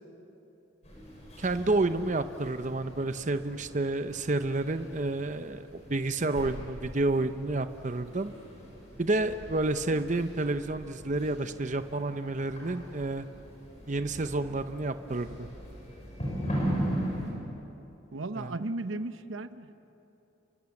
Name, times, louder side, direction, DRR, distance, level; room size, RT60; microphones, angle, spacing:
sound 1, 0.8-17.3, equal, 35° left, 6.3 m, -39 dB
voice 1, 1.4-5.6 5.9-8.3 9.0-13.3 13.9-15.5 18.4-18.5, right 2 dB, 40° right, 9 dB, 0.7 m, -30 dB
voice 2, 18.1-19.8, right 2 dB, 80° right, 11 dB, 0.9 m, -36 dB
30.0 x 24.0 x 7.2 m, 3.0 s
head